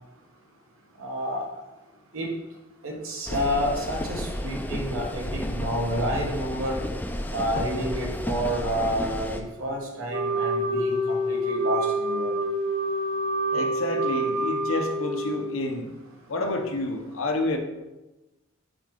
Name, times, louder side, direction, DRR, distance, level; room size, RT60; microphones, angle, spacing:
voice 1, 1.0-1.5 2.1-2.3 2.8-6.8 7.3-12.4, equal, 90° right, -1 dB, 1.3 m, -29 dB
sound 1, 3.3-9.4, left 1 dB, 10° left, 0.3 m, -32 dB
Wind instrument woodwind instrument, 10.1-15.7, right 1 dB, 30° right, 0.6 m, -27 dB
voice 2, 13.5-15.9 16.3-17.6, left 2 dB, 80° left, 4 dB, 0.8 m, -29 dB
5.5 x 4.7 x 3.6 m, 1.0 s
head